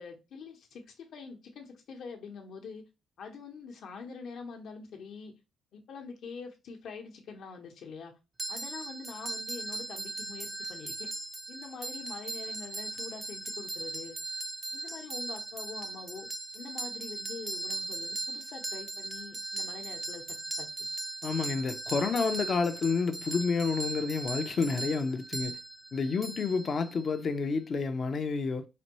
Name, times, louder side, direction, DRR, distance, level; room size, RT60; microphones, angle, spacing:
voice 1, 0.0-2.8 3.2-5.3 5.7-8.1 8.5-11.1 11.5-14.2 14.7-16.3 16.5-20.2 20.6-20.9, left 5 dB, 70° left, 0.9 m, -44 dB
sound 1, 8.4-27.2, right 2 dB, 25° right, 0.5 m, -38 dB
voice 2, 21.2-25.6 25.9-28.7, left 4 dB, 50° left, 0.5 m, -29 dB
4.2 x 2.6 x 2.9 m
cardioid pair, 90°, 0 cm